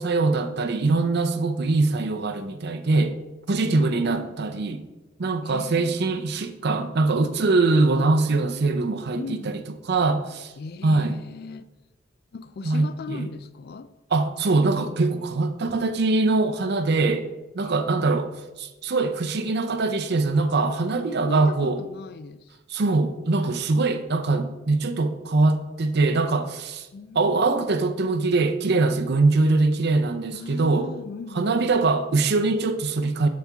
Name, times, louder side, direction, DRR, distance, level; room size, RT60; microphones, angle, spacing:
voice 1, 0.0-3.2 3.5-4.8 5.2-9.6 9.9-10.5 10.8-11.2 12.6-13.3 14.1-17.2 17.5-18.3 18.6-21.8 22.7-26.9 27.1-30.9 31.4-33.3, right 3 dB, 60° right, 0.6 m, -22 dB
voice 2, 3.6-4.4 5.4-6.2 9.2-9.5 10.6-11.6 12.3-13.9 17.6-17.8 21.1-22.6 26.9-27.7 30.3-31.6, left 4 dB, 55° left, 0.4 m, -38 dB
12.5 x 4.3 x 3.5 m
head